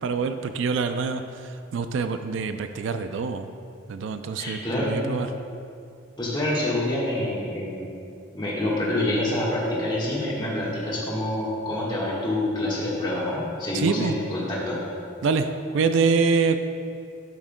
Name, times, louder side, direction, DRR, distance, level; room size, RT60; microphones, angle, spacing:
voice 1, 0.0-3.5 3.9-5.3 13.7-14.2 15.2-15.5 15.7-16.6, right 5 dB, 70° right, 9 dB, 0.3 m, -25 dB
voice 2, 4.3-5.2 6.2-7.9 8.3-14.8, left 1 dB, 20° left, -6 dB, 1.4 m, -27 dB
12.0 x 6.1 x 2.2 m, 2.5 s
head